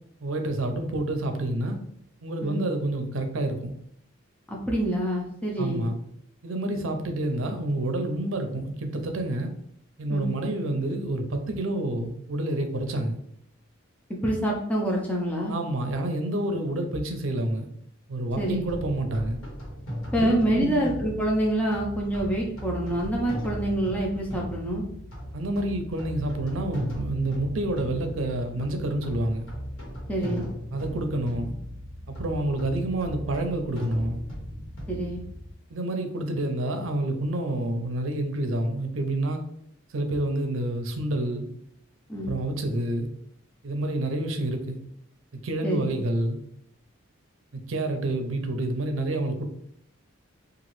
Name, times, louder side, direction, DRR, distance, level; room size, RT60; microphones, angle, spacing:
voice 1, 0.2-1.8 2.2-3.7 5.6-6.0 6.4-9.5 10.0-13.2 15.5-17.7 18.1-19.4 20.2-20.9 25.3-29.5 30.7-31.5 32.1-34.2 35.7-39.4 39.9-41.5 42.2-43.1 43.6-44.8 45.4-46.4 47.5-49.4, right 1 dB, 70° right, 6 dB, 0.5 m, -28 dB
voice 2, 4.5-5.8 10.1-10.3 14.2-15.5 18.4-18.6 20.1-24.8 30.1-30.5 34.9-35.2 42.1-42.3 45.6-45.9, right 1 dB, 5° left, -3 dB, 0.5 m, -26 dB
sound 1, 18.3-35.5, equal, 80° left, 1.2 m, -37 dB
2.9 x 2.4 x 3.0 m, 0.70 s
head